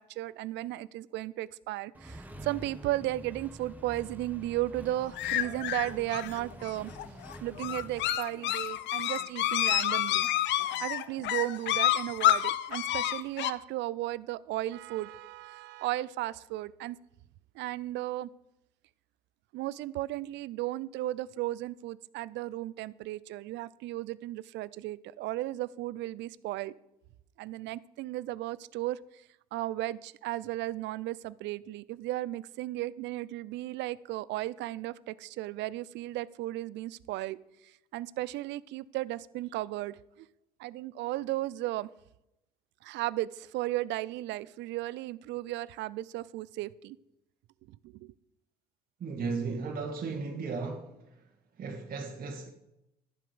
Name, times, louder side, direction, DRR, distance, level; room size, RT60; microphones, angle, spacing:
voice 1, 0.0-6.9 7.4-10.3 10.6-17.0 17.5-18.3 19.5-26.7 27.4-29.2 29.5-37.4 37.6-40.3 40.6-41.9 42.8-47.0 47.8-48.1, right 16 dB, 65° right, 0.5 m, -35 dB
Accelerating revving vroom, 1.9-8.2, right 1 dB, 10° right, 1.4 m, -47 dB
sound 1, 5.2-13.5, left 13 dB, 65° left, 0.6 m, -29 dB
voice 2, 49.0-50.9 51.6-52.5, right 4 dB, 45° right, 1.6 m, -35 dB
12.0 x 7.5 x 5.0 m
hypercardioid pair, 55°, 20 cm